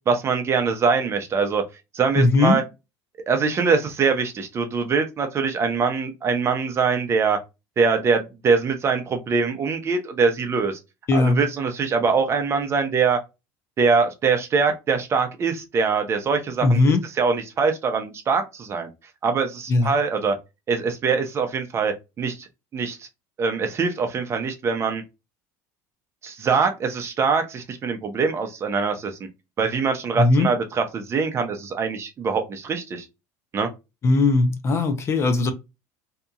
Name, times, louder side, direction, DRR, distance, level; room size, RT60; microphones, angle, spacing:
voice 1, 0.1-1.6 1.9-2.6 3.3-7.4 7.8-10.8 11.1-13.2 13.8-18.9 19.2-20.3 20.7-22.5 22.7-23.1 23.4-25.0 26.2-29.1 29.6-33.1 33.5-33.7, right 5 dB, 30° right, 0.6 m, -23 dB
voice 2, 2.2-2.6 11.1-11.4 16.6-17.0 19.7-19.9 30.2-30.5 34.0-35.5, left 3 dB, 30° left, 0.5 m, -18 dB
2.8 x 2.5 x 2.3 m
supercardioid pair, 115°, 8 cm